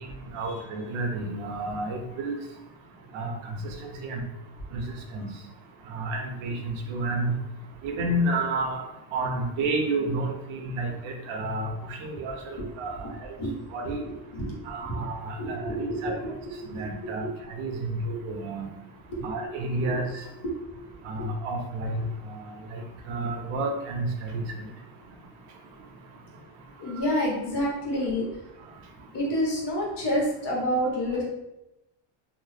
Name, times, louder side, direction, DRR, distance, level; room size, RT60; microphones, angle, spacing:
voice 1, 0.3-2.3 3.1-3.5 3.8-4.2 4.7-4.8 5.1-5.3 5.9-7.3 7.8-8.8 9.1-13.3 13.7-14.0 14.7-16.1 16.7-17.2 17.6-18.7 19.2-20.2 21.0-22.0 22.3-22.8 23.1-24.4, right 2 dB, 75° right, 2 dB, 0.8 m, -30 dB
voice 2, 13.4-14.5 14.9-15.0 15.4-16.1 16.5-17.3 18.2-18.3 19.1-20.0 20.4-20.5 26.8-28.2 29.1-31.2, equal, 55° left, -2 dB, 1.2 m, -29 dB
2.8 x 2.0 x 3.2 m, 0.92 s
cardioid pair, 115°, 48 cm